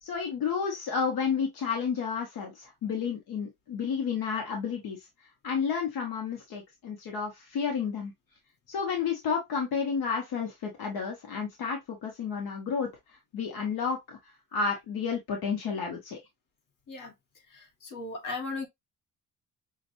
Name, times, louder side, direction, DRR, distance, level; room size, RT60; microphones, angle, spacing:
voice 1, 0.0-5.1 5.4-8.1 8.7-12.9 13.3-14.2 14.5-16.2, left 6 dB, 80° left, 1.2 m, -31 dB
voice 2, 17.5-18.7, left 3 dB, 60° left, 1.8 m, -37 dB
5.8 x 2.5 x 2.6 m
cardioid pair, 145°, 36 cm